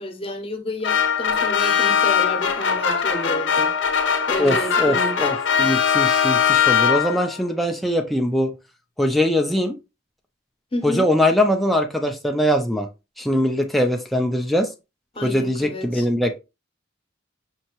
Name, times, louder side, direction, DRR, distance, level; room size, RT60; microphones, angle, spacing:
voice 1, 0.0-3.7 4.3-5.3 10.7-11.1 15.1-16.1, left 1 dB, 30° left, 0.8 m, -30 dB
sound 1, 0.8-7.4, left 7 dB, 70° left, 0.8 m, -20 dB
voice 2, 4.4-8.5 9.0-9.8 10.8-12.9 13.2-14.7 15.2-16.4, left 1 dB, ahead, 0.4 m, -21 dB
5.5 x 2.8 x 3.0 m
head